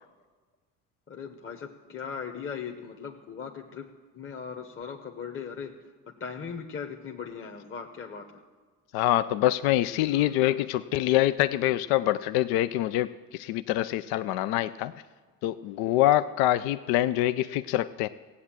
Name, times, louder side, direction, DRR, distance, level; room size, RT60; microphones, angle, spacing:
voice 1, 1.1-5.9 6.2-8.4 10.1-10.5, left 6 dB, 35° left, 2 dB, 1.1 m, -39 dB
voice 2, 8.9-14.9 15.4-18.1, left 14 dB, 75° left, 13 dB, 0.5 m, -25 dB
16.0 x 8.3 x 7.4 m, 1.4 s
supercardioid pair, 70°, 38 cm